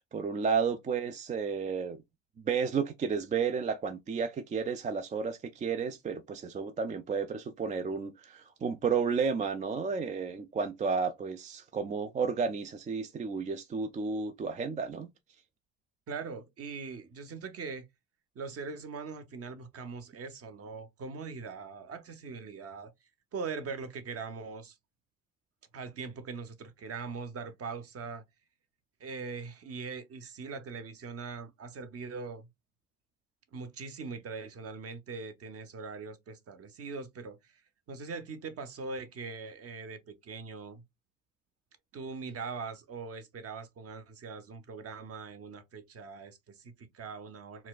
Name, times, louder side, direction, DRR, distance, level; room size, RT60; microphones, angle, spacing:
voice 1, 0.0-2.0 2.4-15.1, right 5 dB, 20° right, 0.3 m, -32 dB
voice 2, 16.1-17.8 18.3-22.9 23.3-24.8 25.7-28.2 29.0-32.5 33.5-37.6 37.9-40.8 41.9-47.7, right 4 dB, 40° right, 0.8 m, -41 dB
4.1 x 2.3 x 2.3 m
hypercardioid pair, 70°, 37 cm